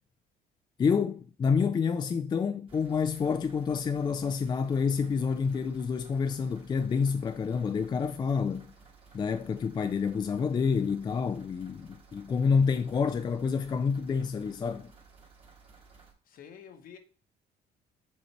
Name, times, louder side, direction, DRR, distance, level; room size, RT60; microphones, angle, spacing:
voice 1, 0.8-8.7 9.1-14.9, left 5 dB, 25° left, 0.3 m, -28 dB
sound 1, 2.7-16.1, right 5 dB, 35° right, 1.5 m, -56 dB
voice 2, 16.2-17.0, left 8 dB, 55° left, 1.0 m, -49 dB
7.2 x 3.1 x 4.4 m
cardioid pair, 110°, 17 cm